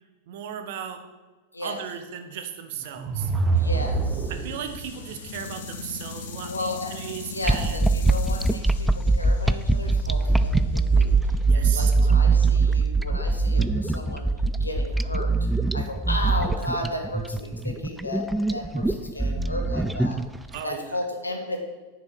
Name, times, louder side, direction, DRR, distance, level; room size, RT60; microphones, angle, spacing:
voice 1, 0.3-1.0 1.6-3.3 4.3-7.8 11.5-11.9 20.5-20.9, right 9 dB, 50° right, 7 dB, 1.3 m, -36 dB
sound 1, 2.8-4.9, right 4 dB, 25° right, 1.0 m, -25 dB
voice 2, 3.5-4.3 6.4-7.0 7.3-8.9 9.2-11.1 11.5-14.3 14.6-15.3 15.7-18.2 18.5-20.2 20.6-21.6, left 1 dB, 80° left, 4 dB, 1.7 m, -34 dB
sound 2, 3.6-11.7, left 4 dB, 55° left, 1.4 m, -40 dB
sound 3, 7.4-20.5, right 3 dB, 5° right, 0.4 m, -22 dB
9.6 x 7.6 x 6.0 m, 1.3 s
figure-of-eight pair, 90°, 0 cm